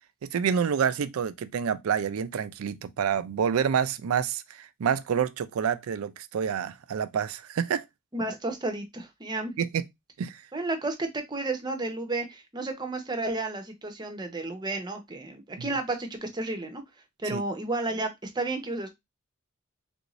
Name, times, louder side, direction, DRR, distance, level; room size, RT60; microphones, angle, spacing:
voice 1, 0.2-7.8 9.6-9.8 10.2-10.4 15.6-15.7 17.3-17.4, right 7 dB, 85° right, 0.4 m, -28 dB
voice 2, 8.1-9.5 10.5-16.8 17.2-18.9, right 2 dB, 20° right, 0.6 m, -32 dB
3.4 x 2.6 x 3.0 m
head